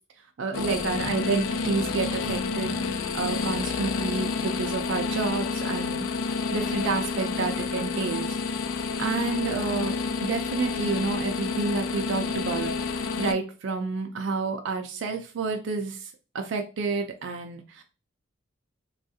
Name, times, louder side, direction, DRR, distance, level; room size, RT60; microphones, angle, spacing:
voice 1, 0.4-2.7 3.1-8.6 9.0-17.8, right 4 dB, 65° right, 4 dB, 0.4 m, -30 dB
sound 1, 0.5-13.3, left 4 dB, 75° left, 0.3 m, -29 dB
3.4 x 2.3 x 2.6 m, 0.33 s
head